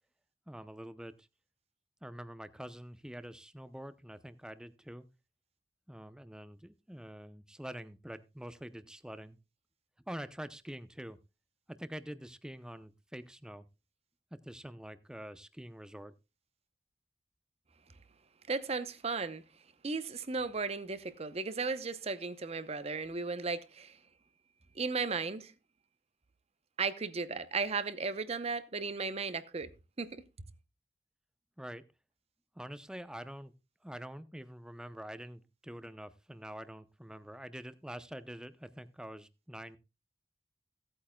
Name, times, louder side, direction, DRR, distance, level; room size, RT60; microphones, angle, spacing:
voice 1, 0.5-1.3 2.0-5.1 5.9-9.4 10.1-11.2 11.7-13.6 14.3-16.1 31.6-31.8 32.5-33.5 33.8-39.8, equal, 5° right, 0.6 m, -46 dB
voice 2, 18.5-19.4 19.8-24.0 24.8-25.5 26.8-29.7 30.0-30.2, right 4 dB, 35° right, 0.8 m, -35 dB
17.0 x 8.6 x 2.2 m
head